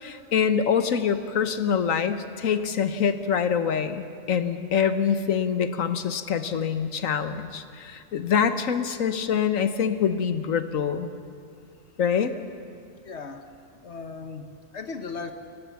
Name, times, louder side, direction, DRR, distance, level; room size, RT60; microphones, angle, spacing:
voice 1, 0.0-11.1 12.0-12.3, left 7 dB, 90° left, 10 dB, 1.5 m, -25 dB
voice 2, 13.0-13.5 13.8-15.3, left 4 dB, 60° left, 8 dB, 1.3 m, -37 dB
29.5 x 15.5 x 7.1 m, 2.3 s
omnidirectional pair, 1.3 m